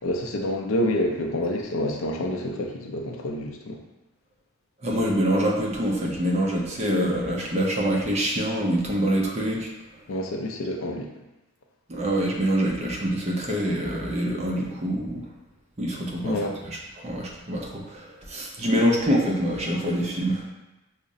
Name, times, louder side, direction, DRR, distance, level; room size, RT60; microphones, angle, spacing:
voice 1, 0.0-3.8 10.1-11.1 16.2-16.6, left 1 dB, 65° left, 2 dB, 0.4 m, -28 dB
voice 2, 4.8-9.7 11.9-15.3 15.8-16.3 17.0-20.5, equal, 30° right, -2 dB, 0.5 m, -25 dB
4.8 x 2.0 x 2.6 m, 1.0 s
head